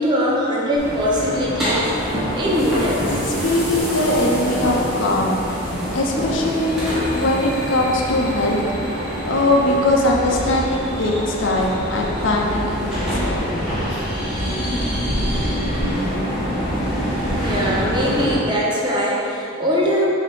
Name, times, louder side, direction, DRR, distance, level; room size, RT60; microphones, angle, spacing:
voice 1, 0.0-1.9 2.3-3.1 14.3-14.5 17.3-20.1, equal, 20° right, -4 dB, 0.8 m, -21 dB
sound 1, 0.8-18.3, equal, ahead, 1.3 m, -25 dB
voice 2, 3.1-5.4 5.9-8.6 9.2-13.5 14.5-14.6, left 1 dB, 70° left, -1 dB, 0.8 m, -21 dB
6.5 x 2.8 x 5.2 m, 2.7 s
head